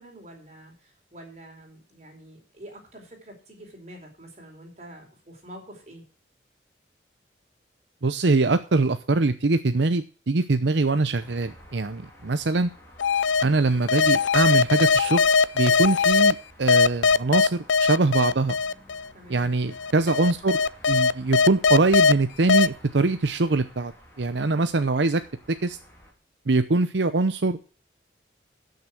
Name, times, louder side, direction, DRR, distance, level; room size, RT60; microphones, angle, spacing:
voice 1, 0.0-6.0 19.1-19.5, right 1 dB, 35° right, 1 dB, 4.5 m, -46 dB
voice 2, 8.0-12.7 13.4-15.2 15.5-18.5 19.3-20.6 20.9-23.9 24.2-25.2 25.5-25.8 26.5-27.6, right 3 dB, 75° right, 10 dB, 0.7 m, -23 dB
sound 1, 11.2-26.1, equal, 15° left, 3.4 m, -52 dB
sound 2, 13.0-13.4 13.9-16.3 16.7-19.0 19.8-22.1 22.5-22.7, left 5 dB, 90° left, 0.5 m, -20 dB
13.5 x 6.7 x 6.0 m, 0.38 s
head